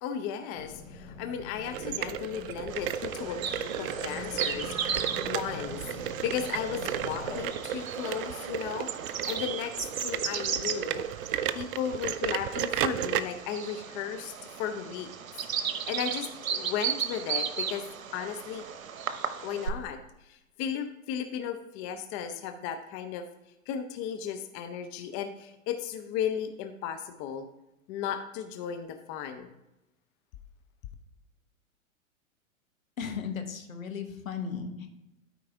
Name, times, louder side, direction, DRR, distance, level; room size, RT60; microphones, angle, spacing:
voice 1, 0.0-11.1 11.5-14.3 14.6-15.1 15.9-17.9 18.1-18.6 19.4-23.3 23.7-27.5 27.9-29.5, left 8 dB, 25° left, 7 dB, 0.6 m, -35 dB
sound 1, 0.5-7.4, left 4 dB, 55° left, 1.4 m, -44 dB
sound 2, 1.7-13.2, right 10 dB, 40° right, 0.5 m, -34 dB
Bird vocalization bird call bird song, 2.7-19.7, right 7 dB, 75° right, 0.9 m, -36 dB
voice 2, 33.0-34.9, left 6 dB, 75° left, 5 dB, 1.5 m, -36 dB
12.5 x 4.8 x 3.5 m, 0.92 s
figure-of-eight pair, 105°, 41 cm